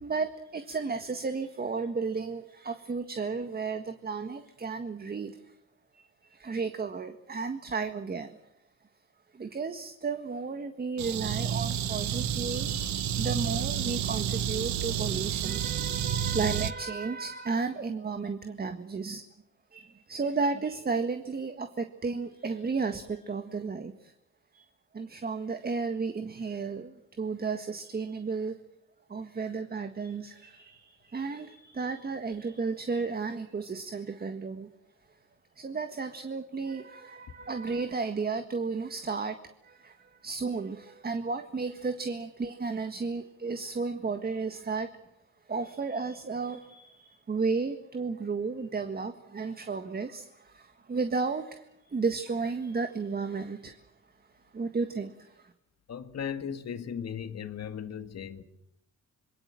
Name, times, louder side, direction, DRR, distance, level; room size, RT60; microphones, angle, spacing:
voice 1, 0.0-5.4 5.9-8.4 9.3-19.2 19.7-24.1 24.5-24.6 24.9-28.6 29.1-34.7 35.6-39.4 39.6-44.9 45.5-51.7 51.9-53.8 54.5-55.5, right 4 dB, 30° right, 1.7 m, -33 dB
sound 1, 11.0-16.7, right 9 dB, 70° right, 1.3 m, -30 dB
voice 2, 55.9-58.4, left 8 dB, 55° left, 2.2 m, -37 dB
26.0 x 22.0 x 7.6 m
cardioid pair, 90°, 30 cm